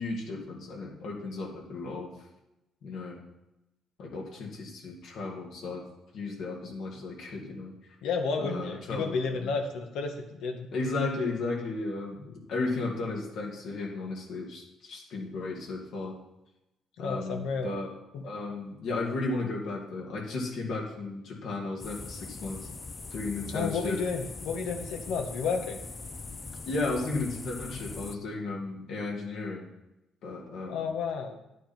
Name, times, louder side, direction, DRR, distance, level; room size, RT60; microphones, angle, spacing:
voice 1, 0.0-2.1 2.8-3.2 4.0-5.9 6.1-7.7 8.4-9.5 10.7-16.1 17.0-17.9 18.2-22.7 23.1-24.0 26.6-29.7 30.2-30.9, left 3 dB, 70° left, -1 dB, 2.4 m, -34 dB
voice 2, 8.0-10.7 17.0-17.7 18.1-18.2 23.5-25.8 30.7-31.4, left 5 dB, 85° left, 4 dB, 1.6 m, -31 dB
sound 1, 21.8-28.2, left 3 dB, 25° left, 0.6 m, -41 dB
10.5 x 9.2 x 4.5 m, 0.91 s
cardioid pair, 130°, 0 cm